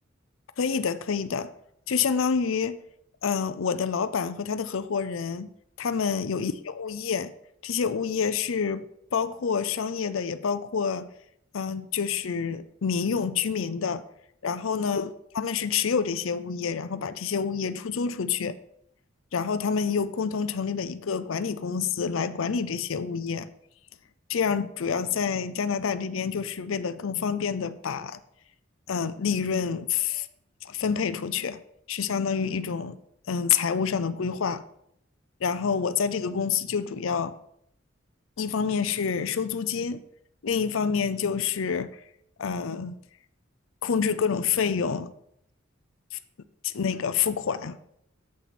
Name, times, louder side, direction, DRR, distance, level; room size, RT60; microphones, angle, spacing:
voice 1, 0.6-1.5 1.9-2.8 3.2-5.5 5.8-7.3 7.6-8.8 9.1-11.1 11.5-14.0 14.4-18.6 19.3-23.5 24.3-28.2 28.9-30.3 30.6-31.6 31.9-33.0 33.3-34.6 35.4-37.4 38.4-40.0 40.4-41.9 42.4-43.0 43.8-45.1 46.1-46.2 46.6-47.8, left 6 dB, 75° left, 13 dB, 0.5 m, -27 dB
9.1 x 7.5 x 4.3 m, 0.73 s
head